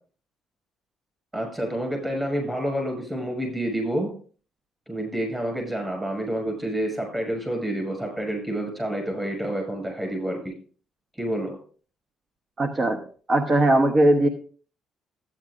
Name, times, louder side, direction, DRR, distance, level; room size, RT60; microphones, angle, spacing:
voice 1, 1.3-4.1 4.9-10.5 11.2-11.6, right 1 dB, 15° right, 2 dB, 6.1 m, -28 dB
voice 2, 12.6-13.0 13.3-14.3, right 1 dB, 30° right, 7 dB, 0.9 m, -19 dB
14.5 x 9.6 x 2.5 m, 0.41 s
cardioid pair, 140°, 0 cm